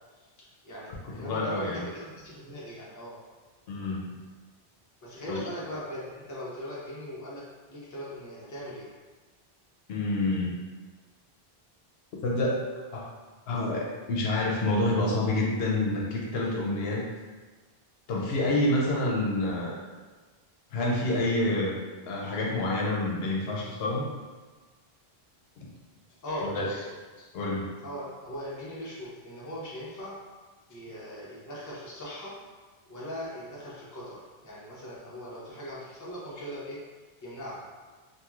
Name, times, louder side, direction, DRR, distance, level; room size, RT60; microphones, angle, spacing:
voice 1, 0.6-3.2 5.0-8.9 26.2-26.9 27.4-27.5 27.8-30.1 30.7-32.3 32.9-36.8 37.2-37.7, equal, 20° left, -7 dB, 0.6 m, -39 dB
voice 2, 1.2-1.8 3.7-4.0 5.3-5.4 9.9-10.6 12.2-12.6 12.9-13.1 13.5-17.0 18.1-19.8 20.7-21.8 22.1-24.1 26.4-26.7 27.2-27.7, left 2 dB, 75° left, -3 dB, 0.8 m, -28 dB
2.9 x 2.7 x 2.4 m, 1.3 s
omnidirectional pair, 1.0 m